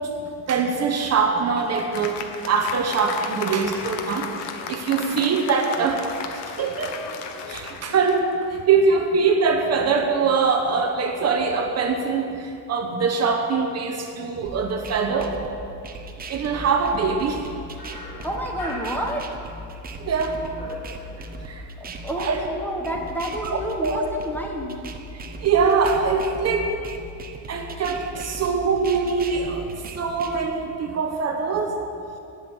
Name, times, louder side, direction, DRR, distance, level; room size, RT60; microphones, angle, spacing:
voice 1, 0.5-4.3 4.7-7.2 7.5-8.3 8.7-15.4 16.3-17.4 20.0-20.4 21.4-21.6 22.2-22.4 23.4-24.1 25.1-26.7 27.5-29.7 30.0-31.7, right 5 dB, 40° right, 3 dB, 1.1 m, -23 dB
Applause, 1.4-8.7, left 6 dB, 80° left, 1.4 m, -35 dB
voice 2, 4.9-5.2 18.2-19.4 21.8-24.8, equal, 5° left, 0 dB, 1.3 m, -30 dB
sound 1, 14.4-30.5, right 1 dB, 20° right, 0.8 m, -38 dB
sound 2, 16.8-19.8 20.1-21.6, left 1 dB, 60° left, 4.1 m, -41 dB
16.0 x 6.4 x 9.5 m, 2.6 s
cardioid pair, 170°, 41 cm